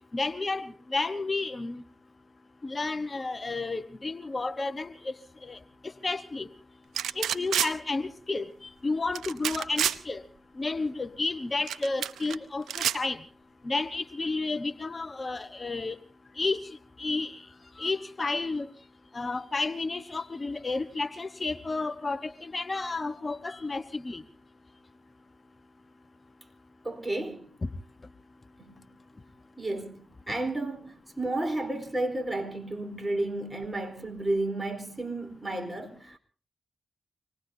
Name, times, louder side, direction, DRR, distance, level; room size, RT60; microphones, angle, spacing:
voice 1, 0.1-1.8 2.6-5.1 5.5-5.6 5.8-6.5 7.2-10.2 10.6-13.2 13.6-15.9 16.4-16.6 17.0-17.4 17.8-18.7 19.1-24.2, left 3 dB, 35° left, 1.2 m, -31 dB
sound 1, 7.0-7.7 9.1-10.0 11.7-12.4 12.7-13.0, right 10 dB, 85° right, 0.8 m, -28 dB
voice 2, 26.8-27.5 28.6-28.8 29.6-36.2, right 2 dB, 20° right, 4.3 m, -32 dB
26.0 x 20.0 x 2.8 m
supercardioid pair, 50°, 0 cm